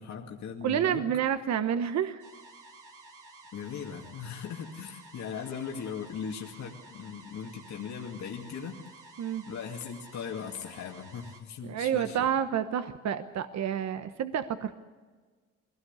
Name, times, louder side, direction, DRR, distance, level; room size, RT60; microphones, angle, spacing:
voice 1, 0.0-1.0 3.5-8.8 9.4-12.3, left 7 dB, 65° left, 0 dB, 2.4 m, -39 dB
voice 2, 0.6-2.2 9.2-9.4 11.6-14.8, right 9 dB, 60° right, 10 dB, 1.1 m, -29 dB
sound 1, 2.2-11.4, right 3 dB, 85° right, 3.0 m, -52 dB
22.0 x 17.5 x 8.2 m, 1.4 s
cardioid pair, 90°, 30 cm